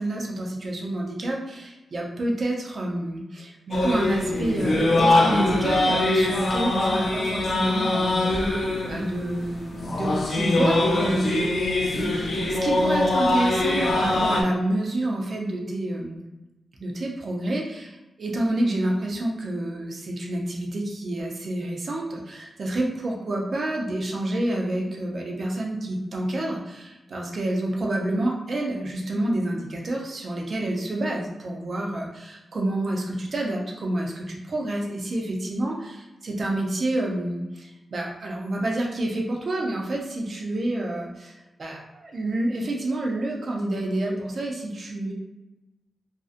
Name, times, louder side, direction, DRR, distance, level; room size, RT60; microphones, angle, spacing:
voice 1, 0.0-12.1 12.4-16.2 16.8-45.1, right 1 dB, 45° right, -1 dB, 0.4 m, -28 dB
sound 1, 3.7-14.4, left 2 dB, 55° left, 0.4 m, -23 dB
2.4 x 2.0 x 2.5 m, 1.0 s
wide cardioid pair, 175°, 0 cm